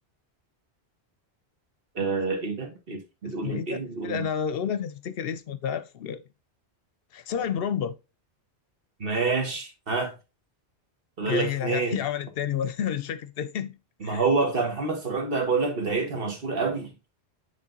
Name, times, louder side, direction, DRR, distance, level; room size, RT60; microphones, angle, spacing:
voice 1, 1.9-4.3 9.0-10.1 11.2-12.0 14.0-16.9, right 4 dB, 55° right, 1.7 m, -27 dB
voice 2, 3.2-6.2 7.1-8.0 11.2-13.7 14.0-14.2, left 8 dB, 65° left, 0.8 m, -30 dB
8.5 x 3.5 x 3.8 m
omnidirectional pair, 1.1 m